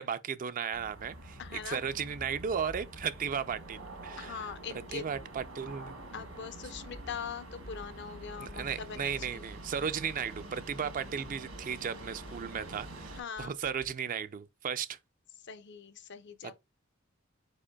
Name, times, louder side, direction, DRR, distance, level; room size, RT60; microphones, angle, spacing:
voice 1, 0.0-4.5 4.9-5.9 8.4-15.0, right 7 dB, 40° right, 0.4 m, -35 dB
sound 1, 0.7-13.2, right 2 dB, 85° right, 1.8 m, -47 dB
voice 2, 1.4-1.8 4.2-5.1 6.1-9.5 13.1-13.5 15.4-16.5, left 6 dB, 60° left, 0.6 m, -42 dB
Accelerating revving vroom, 6.6-13.9, equal, 85° left, 1.4 m, -51 dB
5.0 x 4.4 x 2.2 m
head